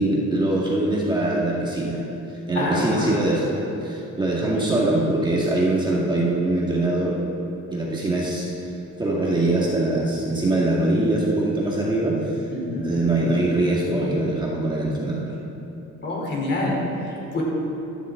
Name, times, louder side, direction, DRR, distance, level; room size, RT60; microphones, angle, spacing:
voice 1, 0.0-2.0 2.5-7.2 7.7-8.5 9.0-12.4 12.7-15.3, right 2 dB, 15° right, -5 dB, 2.0 m, -23 dB
voice 2, 2.5-3.2 12.5-12.9 16.0-17.4, left 2 dB, 40° left, -2 dB, 3.7 m, -26 dB
16.0 x 13.0 x 3.8 m, 3.0 s
cardioid pair, 130°, 29 cm